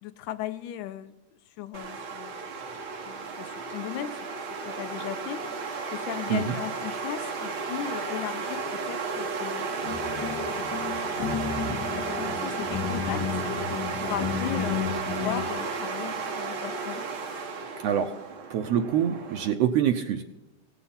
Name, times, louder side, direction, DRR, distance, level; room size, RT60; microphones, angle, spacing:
voice 1, 0.0-2.3 3.1-4.3 4.7-5.5 5.9-10.0 10.6-13.3 14.0-17.1, left 11 dB, 85° left, 9 dB, 2.1 m, -37 dB
sound 1, 1.7-19.5, right 4 dB, 50° right, 1.7 m, -33 dB
sound 2, 9.8-15.5, left 7 dB, 55° left, 1.2 m, -33 dB
voice 2, 18.5-20.2, right 9 dB, 75° right, 6 dB, 1.6 m, -25 dB
17.5 x 7.1 x 5.6 m, 1.0 s
omnidirectional pair, 3.4 m